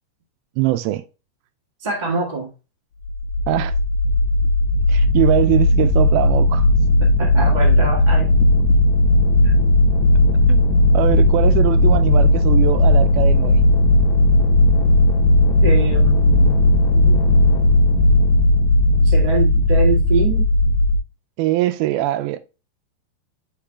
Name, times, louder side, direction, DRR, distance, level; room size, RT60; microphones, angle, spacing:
voice 1, 0.6-1.0 3.5-3.8 4.9-6.7 10.5-13.6 21.4-22.4, right 15 dB, 80° right, 2.3 m, -22 dB
voice 2, 1.8-2.5 7.2-8.3 9.4-9.5 15.6-17.2 19.0-20.5, right 3 dB, 50° right, 0.5 m, -24 dB
sound 1, 3.1-21.0, left 1 dB, 65° left, 1.8 m, -15 dB
8.7 x 5.3 x 2.3 m
omnidirectional pair, 4.5 m